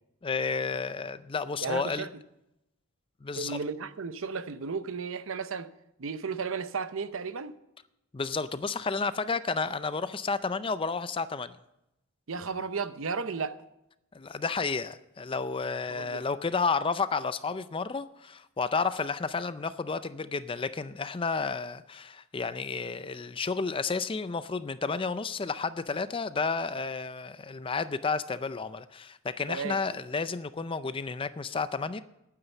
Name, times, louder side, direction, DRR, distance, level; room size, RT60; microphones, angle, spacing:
voice 1, 0.2-2.1 3.2-3.6 8.1-11.6 14.1-32.0, left 4 dB, 25° left, 0.4 m, -31 dB
voice 2, 1.6-2.1 3.4-5.7 6.0-7.5 12.3-13.6 15.9-16.2 29.5-29.8, right 5 dB, 65° right, 0.7 m, -34 dB
11.0 x 9.7 x 7.1 m
head